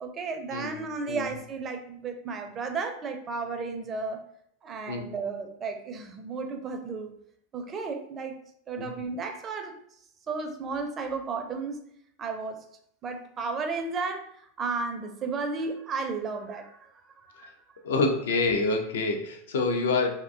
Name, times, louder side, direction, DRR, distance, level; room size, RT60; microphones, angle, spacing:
voice 1, 0.0-4.2 4.6-7.1 7.5-8.4 8.7-9.7 10.3-11.8 12.2-12.6 13.0-14.3 14.6-16.9 17.2-17.5, right 4 dB, 30° right, 5 dB, 0.4 m, -33 dB
voice 2, 17.8-20.1, left 3 dB, 70° left, 4 dB, 0.4 m, -26 dB
2.5 x 2.1 x 2.5 m, 0.69 s
hypercardioid pair, 95°, 0 cm